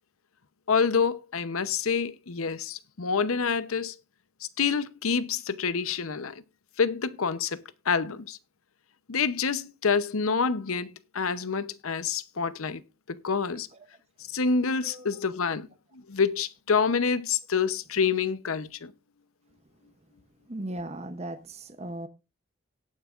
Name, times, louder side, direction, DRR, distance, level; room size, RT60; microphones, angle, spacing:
voice 1, 0.7-4.0 4.4-6.4 6.8-8.4 9.1-12.8 13.1-13.7 14.3-15.7 15.9-18.9, left 5 dB, 80° left, 0.8 m, -27 dB
voice 2, 20.5-22.1, right 1 dB, 30° right, 0.7 m, -37 dB
18.0 x 9.4 x 2.5 m
head